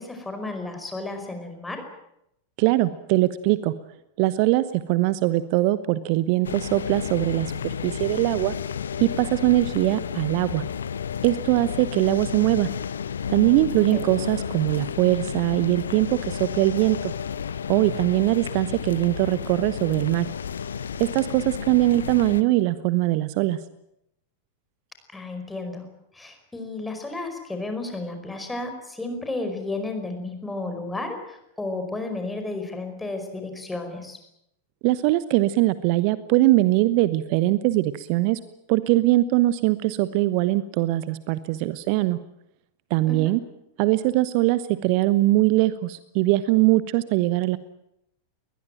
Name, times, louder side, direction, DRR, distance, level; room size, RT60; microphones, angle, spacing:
voice 1, 0.0-1.8 13.9-14.1 25.1-25.9 26.1-34.2 43.1-43.3, left 2 dB, 10° left, 5 dB, 5.1 m, -33 dB
voice 2, 2.6-3.7 4.2-8.5 9.0-10.6 11.2-12.7 13.3-17.1 17.7-20.3 21.0-23.6 34.8-38.4 38.7-42.2 42.9-43.4 43.8-47.6, right 17 dB, 45° right, 15 dB, 1.0 m, -21 dB
sound 1, 6.4-22.4, left 7 dB, 70° left, 1.0 m, -32 dB
21.5 x 20.0 x 9.0 m, 0.80 s
figure-of-eight pair, 90°, 0 cm